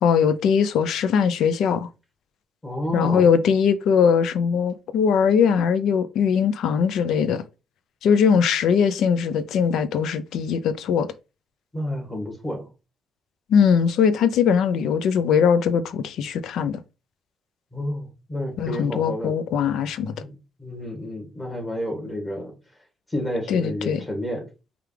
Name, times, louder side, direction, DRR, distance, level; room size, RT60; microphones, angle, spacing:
voice 1, 0.0-1.9 2.9-7.4 8.0-11.1 13.5-16.8 18.6-20.1 23.5-24.0, left 7 dB, 80° left, 0.4 m, -20 dB
voice 2, 2.6-3.3 11.7-12.7 17.7-19.3 20.2-22.5 23.1-24.5, left 1 dB, 15° left, 1.7 m, -30 dB
4.8 x 2.4 x 3.3 m
cardioid pair, 90°, 0 cm